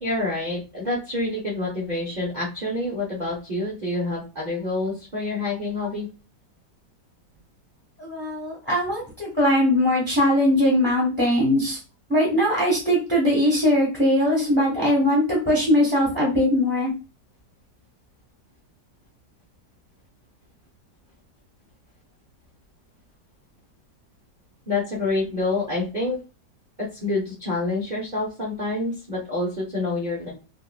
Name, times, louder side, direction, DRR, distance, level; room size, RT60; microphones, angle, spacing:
voice 1, 0.0-6.1 24.7-26.2 26.8-30.3, left 2 dB, 80° right, -6 dB, 0.4 m, -27 dB
voice 2, 8.0-11.8 12.1-16.9, left 1 dB, 10° left, -5 dB, 0.8 m, -20 dB
3.6 x 2.1 x 2.3 m, 0.32 s
omnidirectional pair, 1.9 m